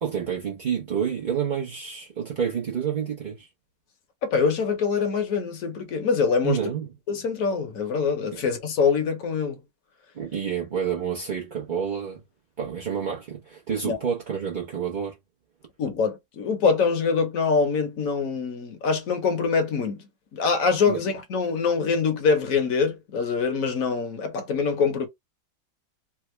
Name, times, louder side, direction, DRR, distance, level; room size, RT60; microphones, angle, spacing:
voice 1, 0.0-3.5 6.4-6.9 8.3-8.4 10.1-12.2 12.6-15.2 20.9-21.0, right 7 dB, 50° right, 0.6 m, -29 dB
voice 2, 4.2-6.6 7.1-9.6 13.8-14.0 15.8-20.0 20.3-25.1, left 5 dB, 60° left, 1.1 m, -24 dB
3.5 x 2.0 x 3.1 m
omnidirectional pair, 1.9 m